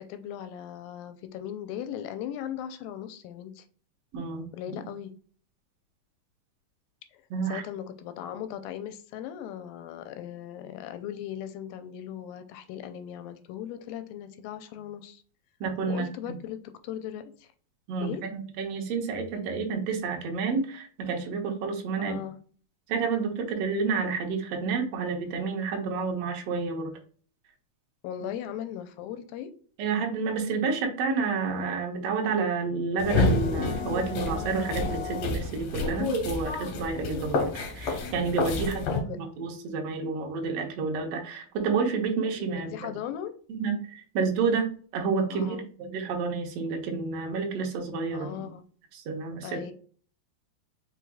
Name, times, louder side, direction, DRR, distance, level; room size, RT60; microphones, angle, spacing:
voice 1, 0.0-3.6 4.5-5.1 7.1-15.2 15.9-17.5 18.0-18.2 22.0-22.4 28.0-29.5 38.6-39.2 42.4-43.3 45.3-45.7 48.1-48.6 49.4-49.7, left 10 dB, 85° left, 9 dB, 2.3 m, -38 dB
voice 2, 4.1-4.8 7.3-7.6 15.6-16.1 17.9-22.2 22.9-26.9 29.8-42.9 43.5-48.5 48.9-49.7, right 5 dB, 80° right, 2 dB, 1.4 m, -30 dB
sound 1, 33.0-39.0, left 3 dB, 65° left, 1.9 m, -29 dB
4.9 x 4.7 x 2.3 m, 0.43 s
omnidirectional pair, 4.2 m